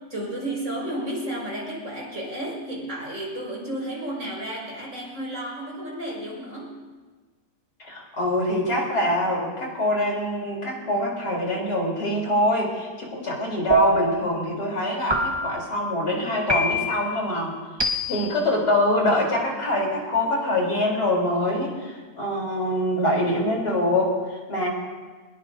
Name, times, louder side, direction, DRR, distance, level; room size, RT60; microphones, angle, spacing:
voice 1, 0.0-6.8, right 1 dB, 55° right, -3 dB, 6.1 m, -32 dB
voice 2, 7.8-17.6 18.1-24.7, left 1 dB, 85° left, -2 dB, 4.3 m, -24 dB
sound 1, 13.7-14.3 15.1-15.7 16.5-17.1 17.8-18.4, right 1 dB, 20° right, 1.2 m, -24 dB
24.0 x 20.5 x 2.7 m, 1.4 s
omnidirectional pair, 1.7 m